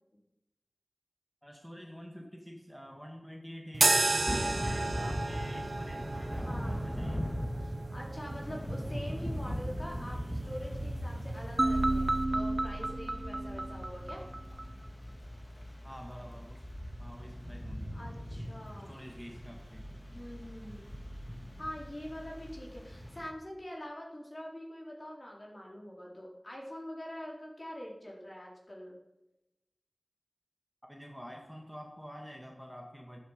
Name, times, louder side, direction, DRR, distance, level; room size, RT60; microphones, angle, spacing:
voice 1, 1.4-7.3 15.8-16.6 17.0-17.9 18.8-19.8 30.9-33.2, equal, ahead, 1 dB, 2.3 m, -47 dB
sound 1, 3.7-12.3, right 3 dB, 70° right, 0.8 m, -34 dB
Thunder / Rain, 4.3-23.3, equal, 25° left, 2.9 m, -40 dB
voice 2, 6.4-6.8 7.6-14.2 17.9-19.0 20.1-20.9 21.6-29.0, equal, 45° left, -2 dB, 4.3 m, -44 dB
sound 2, 11.6-14.7, right 2 dB, 45° right, 0.9 m, -31 dB
12.5 x 9.4 x 8.4 m, 0.97 s
wide cardioid pair, 45°, 0 cm